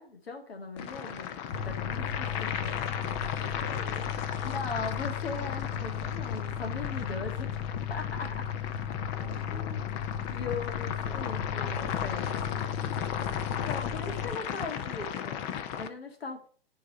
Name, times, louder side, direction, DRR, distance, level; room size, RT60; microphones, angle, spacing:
voice 1, 0.0-2.7 4.4-7.5 7.9-8.6 10.3-12.4 13.5-16.5, left 4 dB, 80° left, 4 dB, 2.0 m, -39 dB
sound 1, 0.8-15.9, left 9 dB, 20° left, 0.4 m, -36 dB
Mechanical fan, 1.5-14.3, left 8 dB, 35° left, 1.9 m, -35 dB
voice 2, 2.0-3.0 3.4-4.1 9.0-10.0, left 5 dB, 55° left, 5 dB, 1.9 m, -47 dB
9.8 x 4.0 x 5.4 m, 0.43 s
hypercardioid pair, 130°, 30 cm